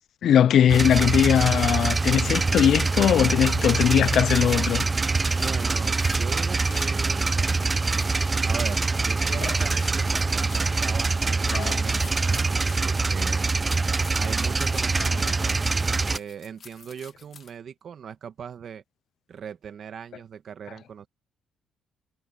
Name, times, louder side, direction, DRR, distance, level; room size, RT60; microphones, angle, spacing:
voice 1, 0.2-4.8 9.4-9.5 11.5-11.8, left 9 dB, 65° left, 0.4 m, -20 dB
sound 1, 0.7-16.2, right 3 dB, 25° right, 0.4 m, -24 dB
sound 2, 4.3-7.1 7.5-7.6 7.9-9.1 9.3-10.9 11.6-13.3 13.6-17.5, left 6 dB, 50° left, 2.6 m, -47 dB
voice 2, 5.3-7.3 8.4-13.5 14.1-15.6 16.1-18.8 19.3-21.1, right 7 dB, 55° right, 1.8 m, -39 dB
cardioid pair, 90°, 0 cm